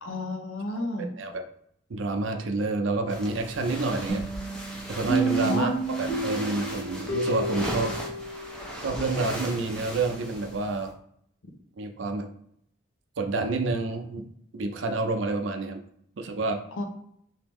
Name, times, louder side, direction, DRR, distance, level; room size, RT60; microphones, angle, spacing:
voice 1, 0.0-1.1 5.4-5.8 16.8-16.9, left 2 dB, 80° left, 4 dB, 0.7 m, -30 dB
voice 2, 1.9-4.2 4.9-5.7 6.0-7.9 8.8-10.9 11.8-12.3 13.2-15.8 16.2-16.6, right 3 dB, 70° right, 5 dB, 0.5 m, -29 dB
sound 1, 3.1-10.9, equal, 5° left, 0.6 m, -38 dB
sound 2, 4.1-8.8, right 2 dB, 55° left, 1.1 m, -30 dB
3.5 x 2.7 x 3.0 m, 0.69 s
head